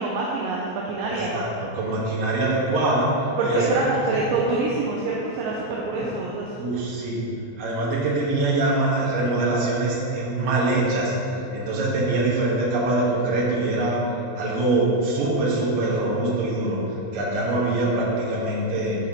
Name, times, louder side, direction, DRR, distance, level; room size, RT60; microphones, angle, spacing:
voice 1, 0.0-1.4 3.4-6.5, right 3 dB, 80° right, -3 dB, 2.1 m, -25 dB
voice 2, 1.0-3.1 3.4-3.9 4.2-4.3 5.9-6.1 6.6-7.2 7.6-14.0 14.4-19.0, right 2 dB, 60° right, -5 dB, 2.4 m, -24 dB
11.0 x 5.4 x 2.9 m, 2.8 s
omnidirectional pair, 4.4 m